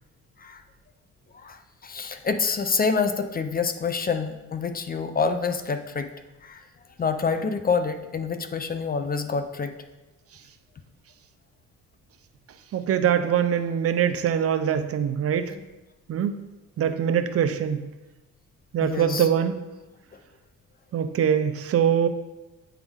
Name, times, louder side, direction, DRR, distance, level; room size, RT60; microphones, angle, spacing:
voice 1, 1.4-6.1 6.4-6.6 7.0-9.7 15.5-15.7 18.8-19.3, left 5 dB, 30° left, 9 dB, 0.5 m, -27 dB
voice 2, 12.7-15.5 16.1-16.4 16.8-17.8 18.7-19.6 20.9-22.1, right 8 dB, 50° right, 9 dB, 0.5 m, -23 dB
9.1 x 3.5 x 3.6 m, 1.0 s
cardioid pair, 90°, 30 cm